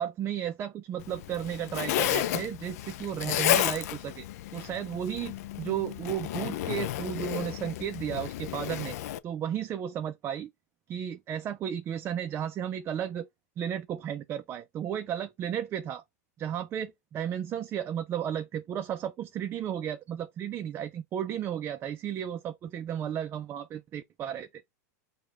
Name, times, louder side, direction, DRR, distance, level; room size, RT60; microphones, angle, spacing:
voice 1, 0.0-4.3 4.5-9.0 9.2-10.5 10.9-13.3 13.6-16.0 16.4-24.6, right 9 dB, 25° right, 0.4 m, -34 dB
Zipper (clothing), 1.0-9.2, left 13 dB, 65° left, 0.4 m, -32 dB
4.7 x 2.2 x 3.6 m
hypercardioid pair, 125°, 9 cm